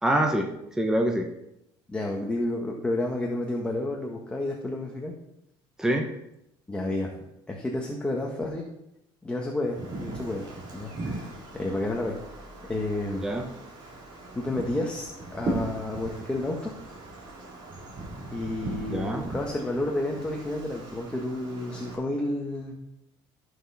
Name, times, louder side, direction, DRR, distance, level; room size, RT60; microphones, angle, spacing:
voice 1, 0.0-1.3 5.8-6.0 13.2-13.4 18.7-19.3, right 1 dB, 5° right, 2 dB, 1.1 m, -26 dB
voice 2, 1.9-5.1 6.7-7.1 7.5-8.7 9.2-10.4 10.7-12.2 12.7-13.3 14.3-16.7 18.3-22.8, left 1 dB, 10° left, -1 dB, 1.5 m, -30 dB
Wind, 9.6-22.0, right 2 dB, 45° right, 3.4 m, -38 dB
14.0 x 6.4 x 4.2 m, 0.82 s
cardioid pair, 130°, 10 cm